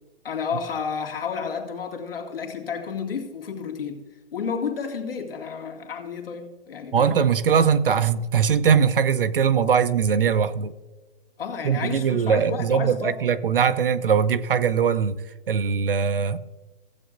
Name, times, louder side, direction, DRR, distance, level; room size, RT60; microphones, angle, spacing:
voice 1, 0.2-4.0 4.3-7.2 11.4-13.2, left 6 dB, 65° left, 2.2 m, -31 dB
voice 2, 6.9-10.7 11.6-15.2 15.5-16.4, right 7 dB, 60° right, 0.7 m, -21 dB
15.5 x 8.4 x 2.5 m
hypercardioid pair, 175°, 31 cm